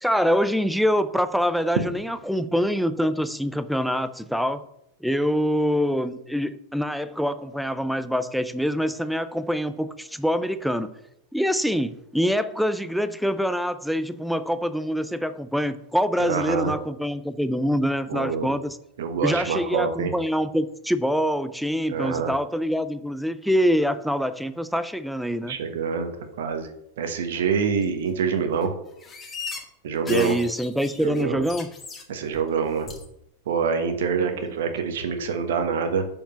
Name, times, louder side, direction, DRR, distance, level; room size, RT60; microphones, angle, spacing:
voice 1, 0.0-4.7 5.0-10.9 11.3-18.8 19.2-25.6 30.1-31.7 34.2-34.4, equal, ahead, 0.5 m, -25 dB
voice 2, 16.2-16.7 18.1-18.6 19.0-20.1 21.9-22.3 25.5-26.1 26.4-26.7 27.0-28.7 29.8-30.4 31.0-31.4 32.1-32.9 33.5-36.0, right 6 dB, 60° right, 1.2 m, -26 dB
sound 1, 27.8-27.9 28.3-28.7 29.0-29.6 29.9-32.0 32.3-32.6 32.9-33.0, left 5 dB, 20° left, 1.8 m, -38 dB
6.6 x 5.4 x 7.2 m
figure-of-eight pair, 90°, 0 cm